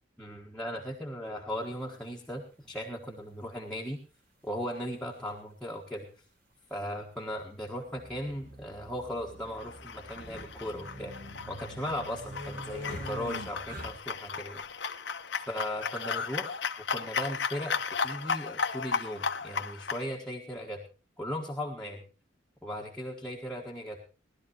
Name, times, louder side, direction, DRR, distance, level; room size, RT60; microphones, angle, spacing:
voice 1, 0.2-4.0 4.4-6.1 6.7-11.1 11.5-14.6 15.5-16.5 16.9-20.8 21.2-22.0 22.6-24.0, equal, 5° left, -3 dB, 1.6 m, -37 dB
sound 1, 1.7-1.8 3.2-3.3 4.8-4.9 5.0-5.1 7.0-7.1 7.4-7.5 8.2-8.6 10.0-14.2, equal, 50° right, 3.3 m, -43 dB
sound 2, 7.8-13.9, right 1 dB, 75° right, 6.5 m, -52 dB
sound 3, 9.6-20.0, left 5 dB, 65° left, 1.2 m, -35 dB
19.5 x 12.5 x 3.0 m, 0.35 s
head